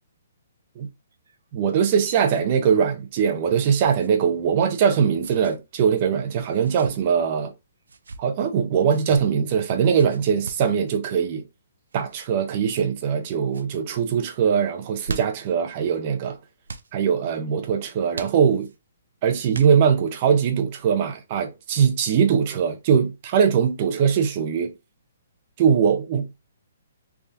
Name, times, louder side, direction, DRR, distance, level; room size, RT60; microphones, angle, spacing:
sound 1, 1.1-2.4 2.7-2.9 3.8-4.1 5.2-5.6 6.5-6.9 7.8-8.2 8.9-9.2 9.9-10.7 11.9-12.2 12.8-13.2 13.5-13.7 14.8-15.5 16.6-16.9 18.1-18.8 19.5-20.1, right 4 dB, 90° right, 0.6 m, -39 dB
voice 1, 1.5-7.5 8.2-11.4 11.9-16.4 16.9-18.7 19.2-24.7 25.6-26.4, right 7 dB, 35° right, 0.7 m, -21 dB
3.5 x 2.4 x 4.1 m
hypercardioid pair, 160°, 0 cm